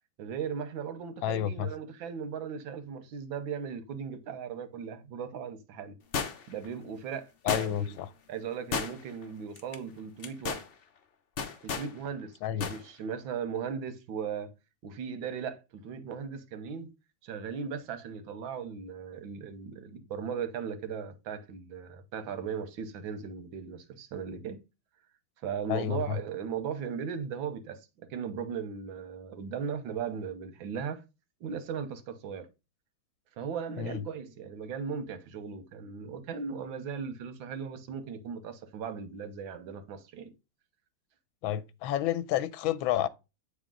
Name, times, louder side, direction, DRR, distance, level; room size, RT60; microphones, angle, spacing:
voice 1, 0.2-5.9 6.5-8.0 8.3-10.6 11.6-14.5 14.8-16.9 17.2-24.6 25.4-31.0 31.4-32.5 33.4-40.3, right 7 dB, 85° right, 1.7 m, -37 dB
voice 2, 1.2-1.7 7.5-8.1 12.4-12.7 25.7-26.2 33.8-34.0 41.4-43.1, left 11 dB, 90° left, 1.4 m, -30 dB
sound 1, 6.1-6.6 7.5-8.0 8.7-9.2 9.6-9.8 10.2-10.7 11.4-11.9 12.6-12.8 13.1-13.2, left 6 dB, 70° left, 0.5 m, -33 dB
8.3 x 3.7 x 3.7 m
omnidirectional pair, 2.1 m